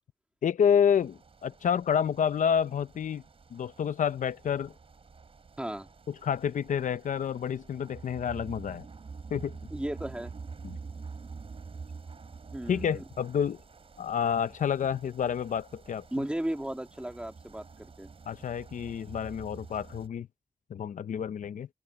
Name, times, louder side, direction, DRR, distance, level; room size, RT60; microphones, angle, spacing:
voice 1, 0.4-3.2 3.5-4.7 6.2-8.8 9.3-9.6 10.6-10.8 12.7-13.6 14.0-16.0 18.3-20.3 20.7-21.7, left 8 dB, 80° left, 0.6 m, -29 dB
fan helsinki forumtunnelist, 0.9-20.1, right 4 dB, 45° right, 4.3 m, -47 dB
voice 2, 5.6-5.9 9.7-10.3 12.5-13.0 16.1-18.1, right 1 dB, 10° right, 2.4 m, -35 dB
open air
wide cardioid pair, 125°, 13 cm